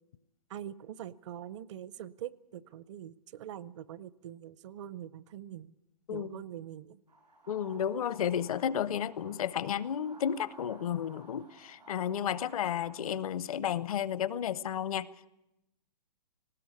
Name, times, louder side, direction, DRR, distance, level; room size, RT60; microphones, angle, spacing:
voice 1, 0.5-5.7 6.1-7.0, right 11 dB, 45° right, 19 dB, 0.6 m, -44 dB
voice 2, 6.1-6.4 7.5-15.1, left 9 dB, 55° left, 19 dB, 0.7 m, -32 dB
sound 1, 7.1-13.0, right 2 dB, 90° right, 5.3 m, -55 dB
19.5 x 16.5 x 8.3 m, 0.92 s
hypercardioid pair, 135°, 21 cm